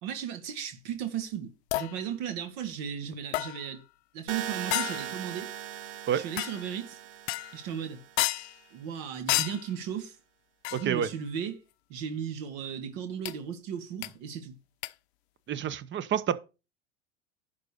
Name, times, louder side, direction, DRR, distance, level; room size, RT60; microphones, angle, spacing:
voice 1, 0.0-3.8 4.1-5.5 6.1-7.0 7.5-8.0 8.7-10.2 10.7-11.6 11.9-14.6, right 8 dB, 55° right, 1.8 m, -36 dB
sound 1, 1.7-2.0 3.3-3.8 4.7-5.2 6.4-6.7 7.3-7.7 8.2-8.6 9.3-9.7 10.6-11.0 13.3-13.4 14.0-14.1 14.8-14.9, left 18 dB, 65° left, 0.6 m, -31 dB
sound 2, 4.3-8.3, right 10 dB, 85° right, 0.9 m, -39 dB
voice 2, 10.7-11.1 15.5-16.4, right 9 dB, 30° right, 0.9 m, -28 dB
11.0 x 4.1 x 6.5 m
hypercardioid pair, 80°, 35 cm